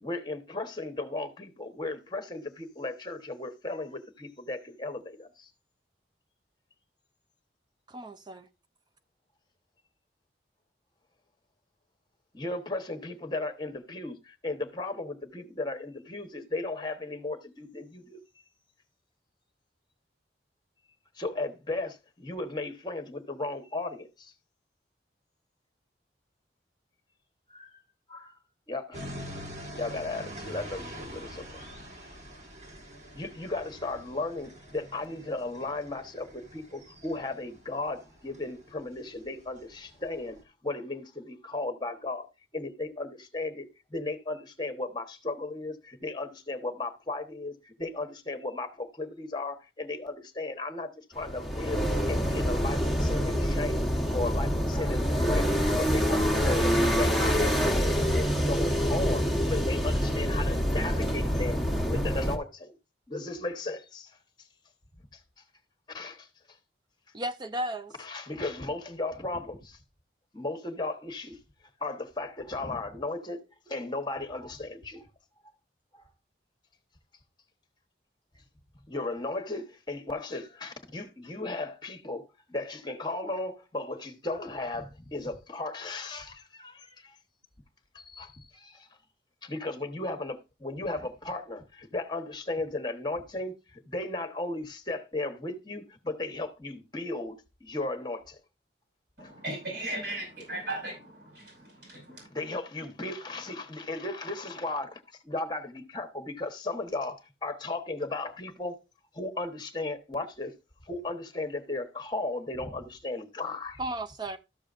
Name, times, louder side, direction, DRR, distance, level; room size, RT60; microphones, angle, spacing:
voice 1, 0.0-5.5 12.3-18.2 21.2-24.3 27.5-27.7 28.1-28.4 28.7-29.0 29.8-31.4 33.1-40.4 40.6-42.3 42.5-51.8 52.1-53.8 54.1-62.7 63.1-64.2 65.9-66.3 68.0-69.8 70.3-71.4 71.8-75.1 75.9-76.1 78.9-87.2 87.9-88.9 89.4-98.4 99.2-99.3 102.3-108.8 109.1-110.5 110.9-113.8, left 2 dB, 25° left, 1.1 m, -35 dB
voice 2, 7.9-8.5 67.1-67.9 113.8-114.4, right 1 dB, 25° right, 0.5 m, -34 dB
sound 1, 28.9-40.4, equal, 40° right, 1.7 m, -45 dB
sound 2, 51.1-62.4, equal, ahead, 1.2 m, -26 dB
voice 3, 99.2-102.3, right 1 dB, 70° right, 5.6 m, -37 dB
13.0 x 6.6 x 2.5 m
head